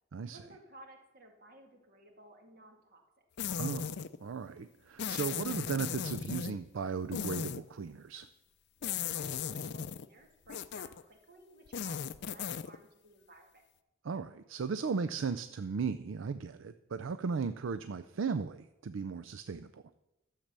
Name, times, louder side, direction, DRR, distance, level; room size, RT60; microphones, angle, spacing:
voice 1, 0.3-3.0 8.8-13.6, right 1 dB, 50° right, 3 dB, 1.9 m, -56 dB
sound 1, 3.4-4.2 5.0-6.6 7.1-7.6 8.8-10.1 10.5-11.0 11.7-12.8, left 7 dB, 55° left, 0.4 m, -37 dB
voice 2, 3.6-8.3 14.0-19.8, right 5 dB, 65° right, 12 dB, 0.4 m, -36 dB
12.0 x 7.5 x 6.7 m, 0.96 s
head